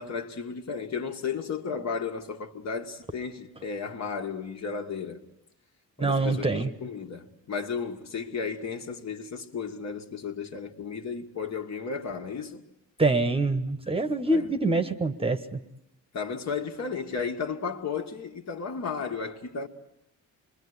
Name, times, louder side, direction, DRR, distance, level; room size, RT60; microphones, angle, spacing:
voice 1, 0.0-5.2 6.0-12.6 14.3-14.5 16.1-19.7, left 5 dB, 55° left, 1.9 m, -34 dB
voice 2, 6.0-6.7 13.0-15.6, right 2 dB, 15° right, 1.0 m, -25 dB
27.0 x 22.5 x 9.7 m
wide cardioid pair, 155°, 33 cm